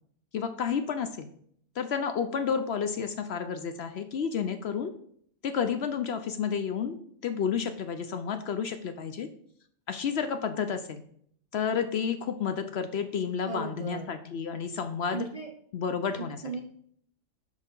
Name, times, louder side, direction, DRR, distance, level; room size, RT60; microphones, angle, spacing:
voice 1, 0.3-1.3 1.8-4.9 5.4-7.0 7.2-9.3 9.9-11.0 11.5-15.3 15.7-16.4, left 6 dB, 60° left, 9 dB, 0.7 m, -31 dB
voice 2, 13.4-14.1 15.1-15.5 16.2-16.6, right 4 dB, 40° right, 2 dB, 0.5 m, -36 dB
6.6 x 5.0 x 5.3 m, 0.64 s
omnidirectional pair, 1.4 m